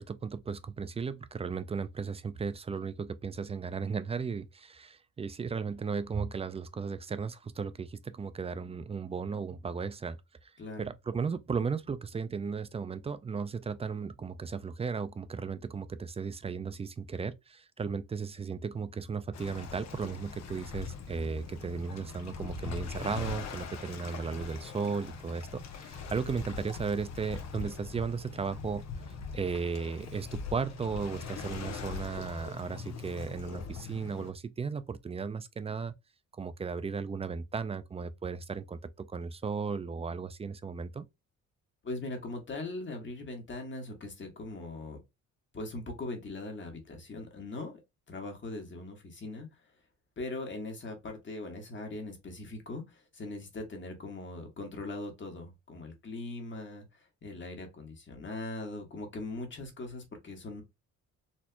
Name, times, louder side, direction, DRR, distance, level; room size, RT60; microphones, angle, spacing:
voice 1, 0.0-10.5 10.8-28.8 29.3-35.9 36.3-41.0, right 5 dB, 20° right, 0.4 m, -35 dB
voice 2, 10.6-10.9 41.8-45.0 45.5-47.8 48.1-49.5 50.2-60.6, left 2 dB, 40° left, 1.4 m, -40 dB
Waves surf, 19.3-34.3, left 5 dB, 60° left, 0.9 m, -42 dB
4.3 x 2.8 x 2.2 m
cardioid pair, 90°, 30 cm